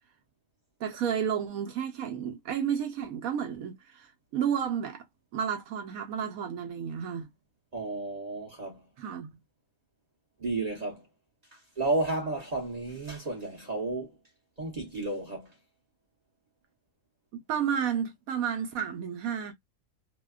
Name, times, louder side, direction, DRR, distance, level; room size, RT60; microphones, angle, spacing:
voice 1, 0.8-5.0 5.3-7.3 9.0-9.3 17.3-19.5, right 8 dB, 70° right, 1.0 m, -31 dB
voice 2, 7.7-8.8 10.4-11.0 11.5-14.2 14.6-15.5, right 2 dB, 35° right, 0.7 m, -32 dB
2.8 x 2.1 x 2.3 m
omnidirectional pair, 1.7 m